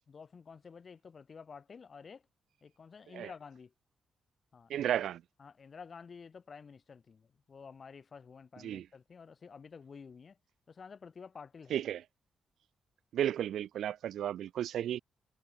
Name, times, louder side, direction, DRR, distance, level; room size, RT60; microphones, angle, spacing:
voice 1, 0.1-2.2 2.6-3.7 4.5-4.9 5.4-10.4 10.7-11.8, left 5 dB, 35° left, 5.4 m, -51 dB
voice 2, 4.7-5.2 8.6-8.8 11.7-12.0 13.1-15.0, right 11 dB, 80° right, 3.4 m, -33 dB
wide cardioid pair, 145°, 0 cm